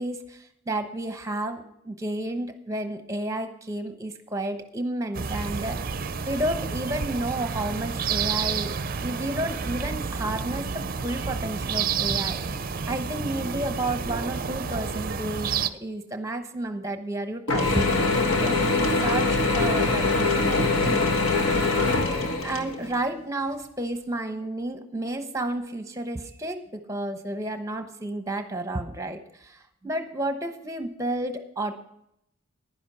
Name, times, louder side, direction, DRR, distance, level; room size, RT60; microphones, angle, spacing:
voice 1, 0.0-6.0 6.2-12.6 12.9-18.1 18.4-21.7 22.4-31.7, right 1 dB, 15° right, 8 dB, 1.0 m, -31 dB
sound 1, 5.1-15.7, right 6 dB, 40° right, 0.5 m, -30 dB
Mechanisms / Drill, 17.5-23.0, left 3 dB, 70° left, 1.6 m, -23 dB
11.0 x 10.5 x 5.6 m, 0.78 s
head